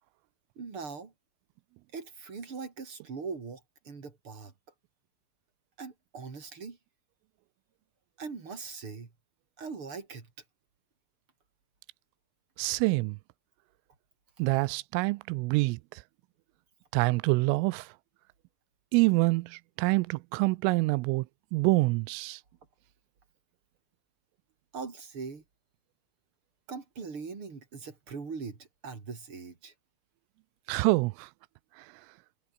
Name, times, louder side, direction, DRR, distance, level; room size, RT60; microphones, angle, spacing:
voice 1, 0.6-1.1 1.9-4.5 5.8-6.8 8.2-9.1 9.6-10.3 24.7-25.4 26.7-29.7, right 5 dB, 30° right, 3.8 m, -41 dB
voice 2, 12.6-13.2 14.4-15.8 16.9-17.9 18.9-21.2 21.5-22.4 30.7-31.3, right 24 dB, 85° right, 3.2 m, -26 dB
omnidirectional pair, 5.8 m